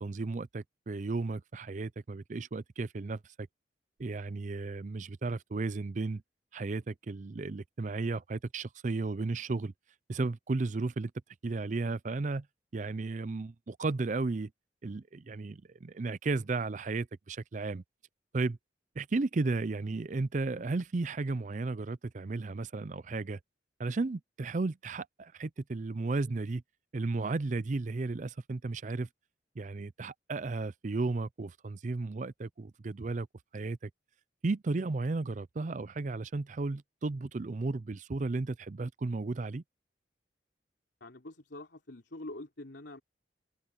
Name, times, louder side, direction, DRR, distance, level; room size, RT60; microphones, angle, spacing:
voice 1, 0.0-3.5 4.0-6.2 6.5-9.7 10.1-11.1 11.4-12.5 12.7-14.5 14.8-17.8 18.3-18.6 19.0-23.4 23.8-26.6 26.9-29.1 29.6-33.3 33.5-33.9 34.4-39.6, right 3 dB, 40° right, 0.5 m, -34 dB
voice 2, 41.0-43.0, left 1 dB, 75° left, 3.1 m, -45 dB
head